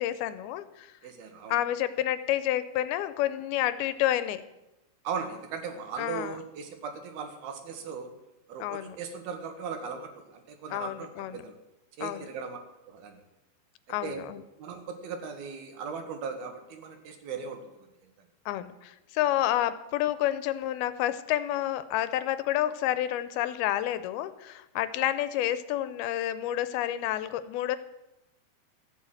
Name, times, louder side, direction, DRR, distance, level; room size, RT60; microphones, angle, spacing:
voice 1, 0.0-0.9 1.5-4.4 6.0-6.3 8.6-9.0 10.7-11.4 12.0-12.3 13.9-14.4 18.5-27.8, left 13 dB, 85° left, 13 dB, 2.5 m, -29 dB
voice 2, 1.0-1.5 5.0-8.1 8.5-11.5 12.0-12.6 12.9-13.2 14.0-14.3 14.6-17.6, right 5 dB, 75° right, 6 dB, 3.4 m, -38 dB
14.0 x 8.3 x 7.9 m, 0.95 s
omnidirectional pair, 4.5 m